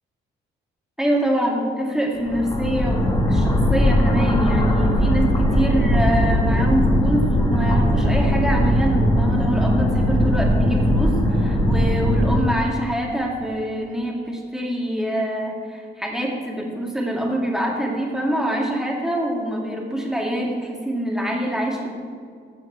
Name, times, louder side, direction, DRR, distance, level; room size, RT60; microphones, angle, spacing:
voice 1, 1.0-21.9, equal, 5° right, -1 dB, 2.3 m, -25 dB
sound 1, 2.2-12.4, equal, 25° left, 1.7 m, -19 dB
16.0 x 7.0 x 3.3 m, 2.2 s
cardioid pair, 90°, 20 cm